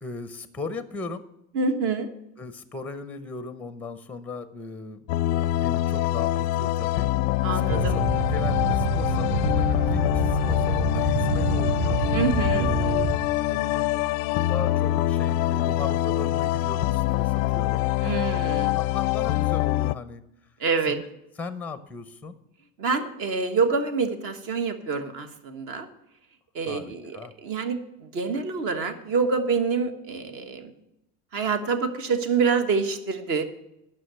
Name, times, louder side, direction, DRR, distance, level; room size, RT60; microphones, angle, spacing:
voice 1, 0.0-1.2 2.4-7.1 7.5-12.0 12.5-13.9 14.3-17.8 18.3-18.4 18.7-20.2 20.9-21.0 21.4-22.4 26.7-27.3, left 3 dB, 5° left, 12 dB, 0.6 m, -37 dB
voice 2, 1.5-2.1 7.4-7.9 12.1-12.7 18.0-18.8 20.6-21.0 22.8-25.9 26.5-30.7 31.3-33.4, right 5 dB, 45° right, 8 dB, 1.4 m, -26 dB
sound 1, 5.1-19.9, left 16 dB, 55° left, 0.4 m, -25 dB
sound 2, 7.7-13.2, right 4 dB, 30° right, 0.7 m, -27 dB
11.0 x 6.0 x 7.7 m, 0.86 s
cardioid pair, 160°, 31 cm